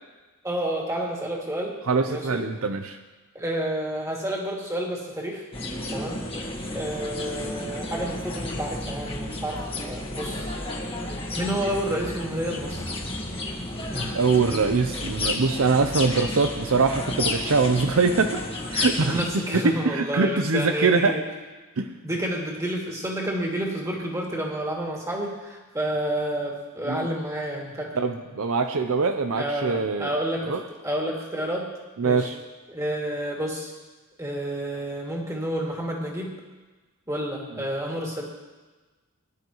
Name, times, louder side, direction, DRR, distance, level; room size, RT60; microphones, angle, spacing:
voice 1, 0.4-1.8 2.1-2.4 3.3-5.4 5.9-6.2 6.7-10.4 11.4-12.8 13.9-14.2 19.0-21.2 22.0-27.9 29.3-31.7 32.0-32.3 32.7-33.7 34.2-36.3 37.1-38.2, right 1 dB, 15° right, -2 dB, 2.4 m, -30 dB
voice 2, 1.9-3.0 14.1-18.4 18.7-21.2 21.8-21.9 26.9-27.1 28.0-30.1 30.5-30.6 32.0-32.4, right 4 dB, 65° right, 7 dB, 0.6 m, -23 dB
sound 1, 5.5-19.3, left 2 dB, 25° left, 1.5 m, -32 dB
20.5 x 11.0 x 3.1 m, 1.3 s
head